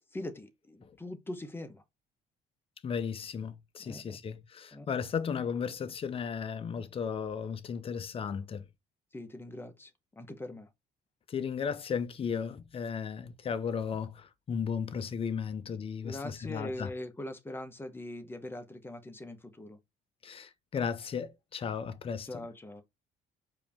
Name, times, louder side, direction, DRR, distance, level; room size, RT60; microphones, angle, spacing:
voice 1, 0.1-1.8 3.8-4.2 4.7-4.9 9.1-9.9 10.2-10.7 16.0-19.8 22.3-22.8, left 1 dB, 15° left, 0.9 m, -42 dB
voice 2, 2.8-8.6 11.3-16.9 20.2-22.5, left 6 dB, 35° left, 0.6 m, -35 dB
4.8 x 2.8 x 3.5 m
cardioid pair, 110°, 17 cm